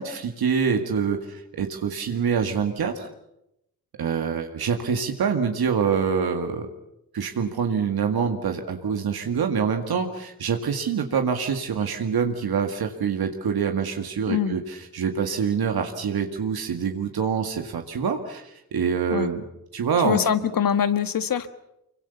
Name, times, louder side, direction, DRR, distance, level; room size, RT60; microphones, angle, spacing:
voice 1, 0.0-3.1 4.0-6.7 7.1-19.4 19.7-20.2, right 6 dB, 70° right, 4 dB, 2.1 m, -25 dB
voice 2, 20.0-21.5, left 8 dB, 60° left, 11 dB, 1.6 m, -23 dB
25.5 x 24.0 x 7.1 m, 0.84 s
cardioid pair, 70°, 38 cm